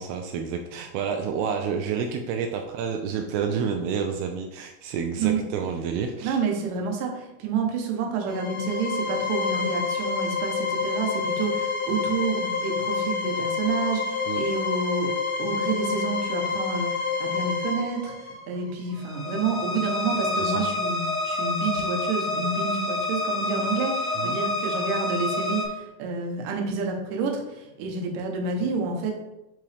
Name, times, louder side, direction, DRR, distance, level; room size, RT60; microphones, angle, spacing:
voice 1, 0.0-6.4 14.3-14.4 20.4-20.7 24.2-24.4, right 6 dB, 90° right, 3 dB, 2.2 m, -29 dB
voice 2, 6.2-15.1 15.4-29.1, right 4 dB, 70° right, 1 dB, 2.1 m, -29 dB
sound 1, 8.3-25.6, left 3 dB, 65° left, 1.0 m, -28 dB
10.5 x 3.7 x 3.4 m, 0.96 s
omnidirectional pair, 5.1 m